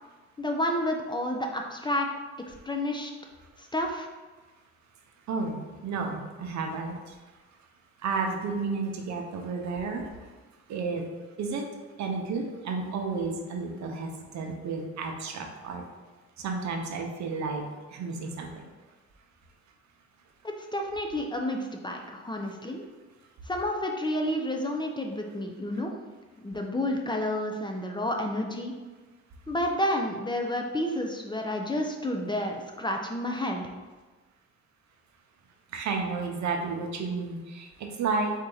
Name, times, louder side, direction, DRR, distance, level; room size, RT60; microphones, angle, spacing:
voice 1, 0.4-2.1 2.6-3.1 3.6-4.1 20.4-22.8 23.5-25.9 26.4-28.7 29.5-33.7, left 1 dB, 15° left, 2 dB, 0.5 m, -30 dB
voice 2, 5.3-7.1 8.0-10.3 10.7-11.1 11.4-11.6 12.0-15.8 16.4-18.6 35.7-38.3, right 4 dB, 70° right, 2 dB, 0.8 m, -32 dB
4.4 x 2.8 x 3.8 m, 1.3 s
cardioid pair, 90°, 30 cm